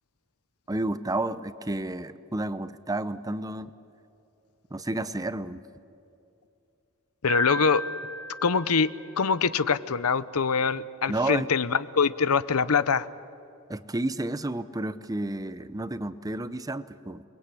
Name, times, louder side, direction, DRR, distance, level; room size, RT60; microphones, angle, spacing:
voice 1, 0.7-3.7 4.7-5.6 11.1-11.5 13.7-17.2, right 2 dB, 15° right, 13 dB, 0.8 m, -31 dB
voice 2, 7.2-7.8 8.4-8.9 9.2-13.1, left 5 dB, 85° left, 15 dB, 0.8 m, -24 dB
Piano, 7.3-9.4, right 2 dB, 55° right, 1.2 m, -36 dB
29.5 x 21.5 x 8.5 m, 2.7 s
head